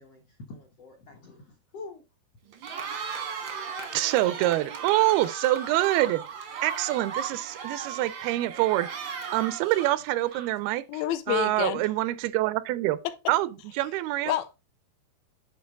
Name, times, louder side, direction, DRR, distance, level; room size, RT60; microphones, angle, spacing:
voice 1, 0.0-2.0, left 3 dB, 65° left, 1.5 m, -45 dB
Cheering, 2.5-10.8, right 6 dB, 65° right, 1.1 m, -37 dB
voice 2, 3.9-6.2 6.6-11.0 11.3-13.0 13.3-14.3, right 16 dB, 85° right, 2.5 m, -26 dB
voice 3, 10.9-11.8 14.3-14.6, left 12 dB, 85° left, 2.5 m, -28 dB
9.5 x 4.6 x 3.5 m
omnidirectional pair, 4.4 m